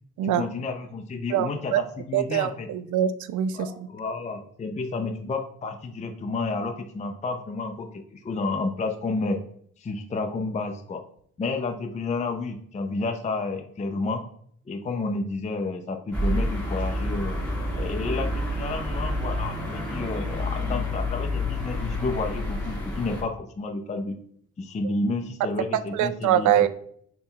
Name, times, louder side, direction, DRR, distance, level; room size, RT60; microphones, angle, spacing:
voice 1, 0.2-2.7 3.5-9.4 9.8-11.0 11.4-14.2 14.7-17.4 17.7-24.2 24.6-26.7, left 3 dB, 25° left, 4 dB, 0.5 m, -31 dB
voice 2, 1.3-1.8 2.1-3.7 25.9-26.7, right 11 dB, 75° right, 13 dB, 0.5 m, -23 dB
sound 1, 16.1-23.2, left 1 dB, 5° left, 1.8 m, -29 dB
6.2 x 2.3 x 3.7 m, 0.63 s
cardioid pair, 90°, 30 cm